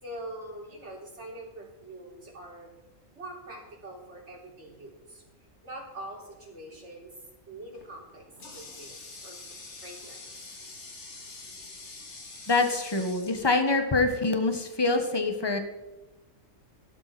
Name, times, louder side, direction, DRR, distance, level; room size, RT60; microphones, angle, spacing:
voice 1, 0.0-2.7 3.1-5.2 5.6-7.1 7.5-8.3 8.5-9.4 9.8-10.2, right 1 dB, 60° right, -1 dB, 4.1 m, -43 dB
Water tap faucet, 7.7-14.2, left 3 dB, 60° left, 2.4 m, -46 dB
voice 2, 12.5-15.6, left 3 dB, 20° left, 6 dB, 1.5 m, -25 dB
17.5 x 13.0 x 4.4 m, 1.0 s
omnidirectional pair, 1.3 m